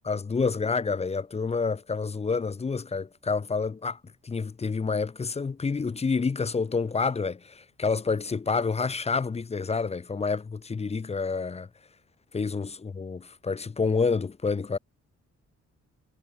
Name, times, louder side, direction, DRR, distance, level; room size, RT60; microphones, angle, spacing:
voice 1, 0.0-4.0 4.2-11.7 12.3-14.8, left 4 dB, 20° left, 0.7 m, -28 dB
cardioid pair, 135°, 30 cm